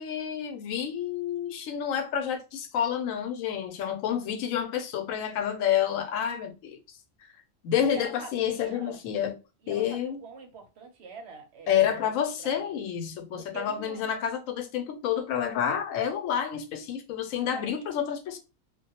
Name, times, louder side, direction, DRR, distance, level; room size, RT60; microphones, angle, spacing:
voice 1, 0.0-6.8 7.6-9.4 9.7-10.2 11.7-18.4, left 9 dB, 85° left, 1.0 m, -29 dB
voice 2, 7.9-9.0 9.6-12.8 13.4-14.1 17.5-18.1, right 4 dB, 65° right, 0.8 m, -45 dB
2.3 x 2.1 x 2.8 m
omnidirectional pair, 1.3 m